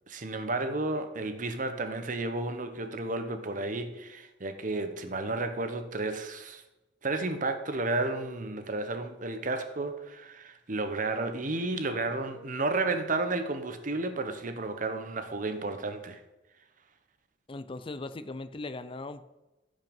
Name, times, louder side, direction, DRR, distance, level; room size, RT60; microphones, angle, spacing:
voice 1, 0.1-6.6 7.0-16.2, right 2 dB, 45° right, 1.1 m, -32 dB
voice 2, 17.5-19.2, left 2 dB, 30° left, 0.4 m, -39 dB
16.0 x 5.4 x 5.4 m
head